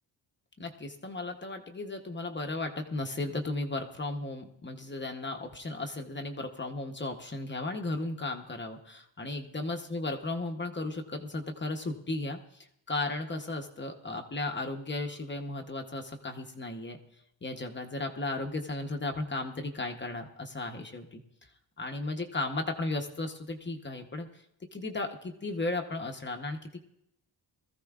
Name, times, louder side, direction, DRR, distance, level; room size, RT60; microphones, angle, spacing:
voice 1, 0.6-17.0 17.4-21.5 21.8-24.4 24.7-26.8, left 2 dB, 25° left, 3 dB, 0.8 m, -35 dB
21.0 x 14.0 x 2.4 m, 0.75 s
wide cardioid pair, 125°, 45 cm